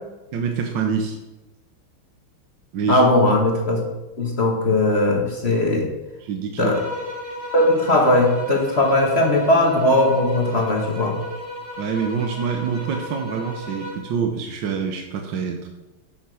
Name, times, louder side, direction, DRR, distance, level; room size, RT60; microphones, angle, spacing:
voice 1, 0.3-1.2 2.7-3.1 6.2-6.7 11.8-15.7, right 6 dB, 65° right, 3 dB, 1.5 m, -26 dB
voice 2, 2.9-3.8 4.2-5.9 6.6-6.8 7.5-11.1, left 1 dB, 35° left, 1 dB, 1.4 m, -18 dB
sound 1, 6.7-14.2, left 1 dB, 50° left, 2.6 m, -35 dB
8.4 x 6.0 x 6.2 m, 1.0 s
omnidirectional pair, 2.3 m